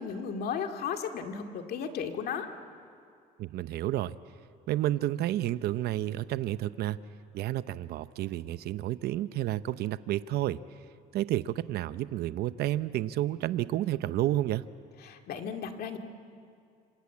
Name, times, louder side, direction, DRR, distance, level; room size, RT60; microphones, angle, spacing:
voice 1, 0.0-2.5 15.0-16.0, left 7 dB, 65° left, 5 dB, 2.3 m, -35 dB
voice 2, 3.4-4.2 4.7-7.0 7.3-10.6 11.1-14.6, right 14 dB, 70° right, 14 dB, 0.7 m, -30 dB
26.5 x 26.0 x 8.4 m, 2.4 s
cardioid pair, 110°, 17 cm